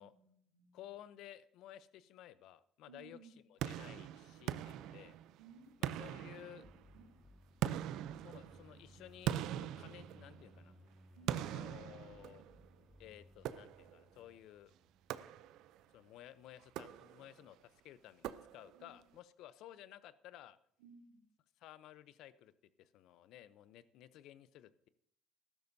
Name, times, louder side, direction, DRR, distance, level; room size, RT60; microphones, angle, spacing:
voice 1, 0.0-0.8 2.9-3.4 5.4-5.7 6.9-7.1 11.1-11.7 18.7-19.0 20.8-21.3, right 5 dB, 90° right, -2 dB, 3.1 m, -60 dB
voice 2, 0.7-3.2 3.5-5.2 5.8-6.6 8.2-9.3 9.6-10.7 11.3-12.4 13.0-14.7 15.9-20.6 21.6-22.5 22.8-24.9, left 12 dB, 70° left, 16 dB, 0.6 m, -55 dB
sound 1, 3.6-5.4 5.8-7.0 7.6-10.6 11.3-12.7 13.4-14.1 15.1-15.8 16.6-17.4 18.2-18.9, right 11 dB, 70° right, 0.5 m, -42 dB
sound 2, 6.6-15.5, equal, 30° left, 1.8 m, -62 dB
13.5 x 13.0 x 2.7 m, 0.66 s
hypercardioid pair, 65°, 0 cm